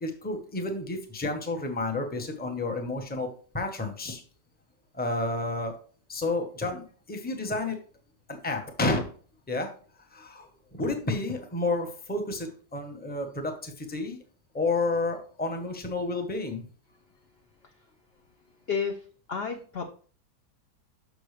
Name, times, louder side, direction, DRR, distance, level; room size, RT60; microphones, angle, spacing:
voice 1, 0.0-3.3 3.5-4.2 4.9-5.7 6.1-7.8 8.3-9.1 9.5-9.7 10.1-14.2 14.5-16.6, left 2 dB, 10° left, 4 dB, 0.7 m, -30 dB
voice 2, 18.7-19.8, left 6 dB, 60° left, 4 dB, 0.6 m, -32 dB
6.4 x 6.1 x 3.2 m, 0.42 s
omnidirectional pair, 1.8 m